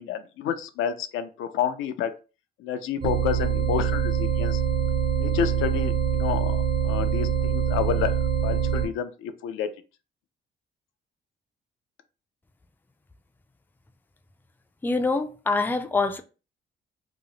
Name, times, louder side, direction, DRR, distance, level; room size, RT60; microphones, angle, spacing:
voice 1, 0.0-2.1 2.6-4.6 5.1-9.7, left 8 dB, 85° left, 0.4 m, -29 dB
sound 1, 3.0-8.9, right 8 dB, 50° right, 1.3 m, -24 dB
voice 2, 14.8-16.2, left 3 dB, 10° left, 0.4 m, -25 dB
2.9 x 2.0 x 3.8 m
cardioid pair, 90°, 20 cm